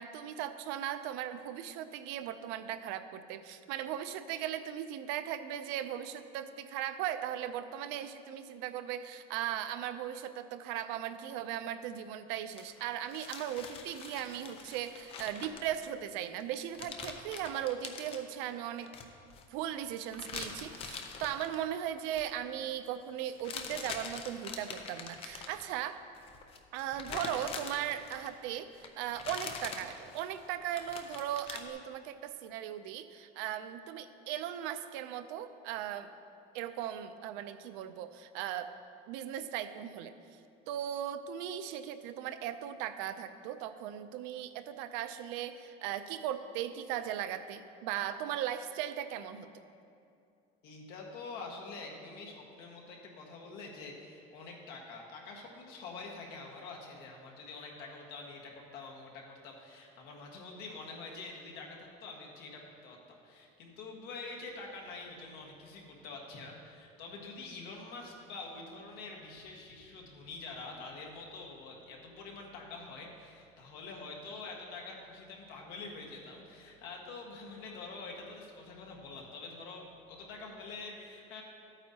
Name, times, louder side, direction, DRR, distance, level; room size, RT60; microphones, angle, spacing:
voice 1, 0.0-18.9 19.5-26.0 26.7-36.1 36.5-38.7 39.1-40.1 40.7-49.5, right 10 dB, 70° right, 11 dB, 0.5 m, -38 dB
sound 1, 12.6-16.0 16.4-16.5 16.7-18.2 18.8-19.4 20.1-21.6 22.0-22.3 23.2-25.7 26.1-28.5 28.8-31.7, left 5 dB, 30° left, 0.6 m, -44 dB
voice 2, 50.6-81.4, left 3 dB, 60° left, 0 dB, 1.6 m, -46 dB
13.0 x 8.9 x 2.8 m, 2.5 s
cardioid pair, 170°, 19 cm